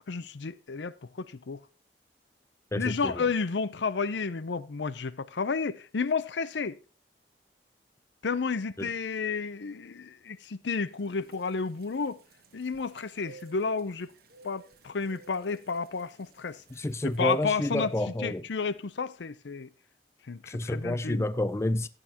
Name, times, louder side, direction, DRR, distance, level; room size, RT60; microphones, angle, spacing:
voice 1, 0.0-1.6 2.8-6.8 8.2-12.2 12.5-14.1 14.4-16.6 17.0-17.9 18.2-19.7 20.2-21.3, left 4 dB, 80° left, 0.6 m, -31 dB
voice 2, 2.7-3.3 8.8-8.9 16.7-18.4 20.5-21.9, left 1 dB, 15° left, 0.4 m, -29 dB
sound 1, 11.0-17.6, right 3 dB, 55° right, 1.2 m, -57 dB
13.5 x 9.2 x 2.9 m
head